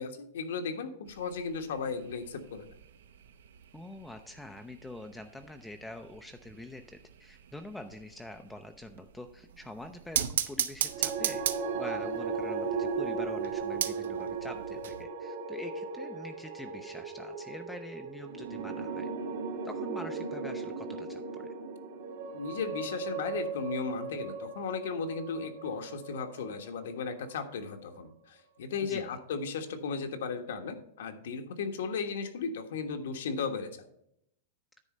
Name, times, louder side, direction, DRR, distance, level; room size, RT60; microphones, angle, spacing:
voice 1, 0.0-2.7 22.3-33.8, left 5 dB, 70° left, 6 dB, 1.3 m, -36 dB
sound 1, 1.1-15.0, right 9 dB, 85° right, 0.7 m, -39 dB
voice 2, 3.7-11.4 11.7-19.1 19.6-21.5 28.8-29.2, left 1 dB, 5° left, 6 dB, 0.4 m, -45 dB
sound 2, 10.8-27.1, right 4 dB, 60° right, 2.0 m, -37 dB
9.8 x 4.1 x 6.5 m, 0.73 s
supercardioid pair, 170°, 0 cm